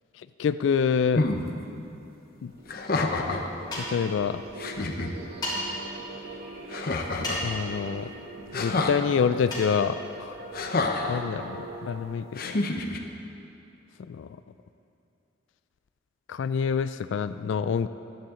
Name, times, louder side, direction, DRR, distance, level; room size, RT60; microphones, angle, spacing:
voice 1, 0.4-1.2 2.4-2.5 3.9-4.4 4.7-4.8 7.4-8.1 8.5-10.4 11.1-12.6 14.1-14.3 16.3-17.9, left 6 dB, 70° left, 13 dB, 0.3 m, -27 dB
sound 1, 1.1-1.4 2.7-3.5 4.2-4.3 4.6-5.1 6.7-7.5 8.5-9.0 10.5-11.2 12.3-13.0, left 3 dB, 50° left, 0.8 m, -28 dB
sound 2, 2.4-12.0, right 2 dB, 55° right, 1.3 m, -43 dB
sound 3, 3.7-4.1 5.4-5.6 7.2-7.6 9.5-9.7, left 1 dB, 20° left, 2.9 m, -32 dB
16.0 x 11.5 x 3.8 m, 2.8 s
head